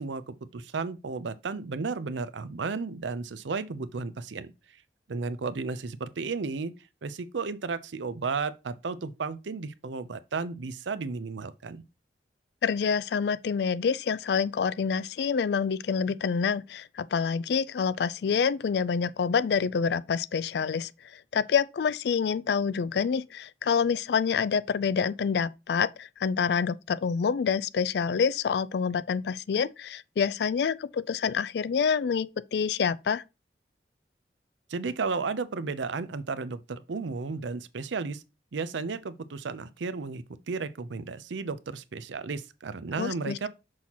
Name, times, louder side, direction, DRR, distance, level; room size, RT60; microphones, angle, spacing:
voice 1, 0.0-4.5 5.1-6.7 7.0-11.8 34.7-38.2 38.5-43.5, right 4 dB, 85° right, 0.6 m, -33 dB
voice 2, 12.6-33.2 43.0-43.5, left 6 dB, 65° left, 0.3 m, -27 dB
6.2 x 5.6 x 2.9 m
head